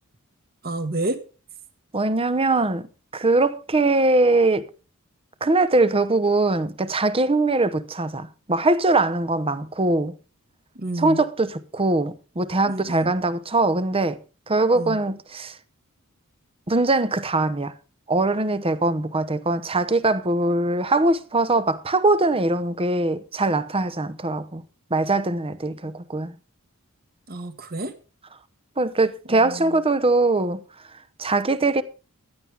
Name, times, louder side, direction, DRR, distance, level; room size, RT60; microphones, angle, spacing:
voice 1, 0.6-1.2 10.8-11.2 12.7-13.2 14.8-15.0 27.3-27.9 29.3-29.8, right 2 dB, 45° right, 1.7 m, -30 dB
voice 2, 1.9-2.9 3.1-4.7 5.4-10.1 11.0-15.6 16.7-17.7 18.1-24.6 24.9-26.3 28.8-30.6 31.2-31.8, right 2 dB, 25° right, 0.9 m, -22 dB
15.0 x 11.0 x 3.5 m
head